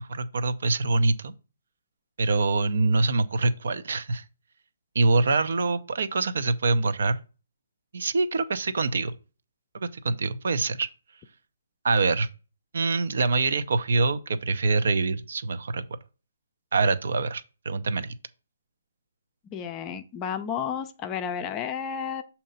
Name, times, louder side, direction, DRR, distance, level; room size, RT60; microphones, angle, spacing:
voice 1, 0.0-1.3 2.2-4.2 4.9-7.2 7.9-9.1 9.7-10.9 11.8-12.3 12.7-15.8 16.7-18.1, right 3 dB, 65° right, 0.6 m, -25 dB
voice 2, 19.5-22.2, left 7 dB, 20° left, 0.5 m, -32 dB
6.3 x 2.8 x 5.5 m
hypercardioid pair, 155°, 0 cm